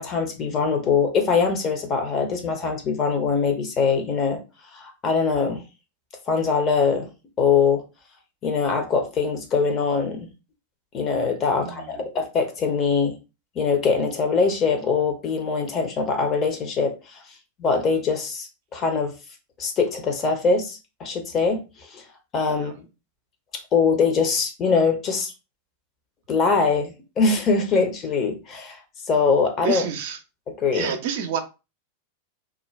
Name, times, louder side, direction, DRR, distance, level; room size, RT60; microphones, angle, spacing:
voice 1, 0.0-4.4 4.7-5.6 6.3-7.1 7.4-7.8 8.4-10.3 10.9-13.1 13.6-16.9 17.6-19.1 19.6-21.6 21.9-22.0 22.3-22.7 23.7-25.3 26.3-28.8 29.1-29.9 30.6-30.9, left 5 dB, 30° left, 0.7 m, -22 dB
voice 2, 11.5-12.0 22.5-22.8 29.6-30.2 30.7-31.4, right 7 dB, 50° right, 0.5 m, -29 dB
2.4 x 2.2 x 3.1 m
figure-of-eight pair, 90°, 0 cm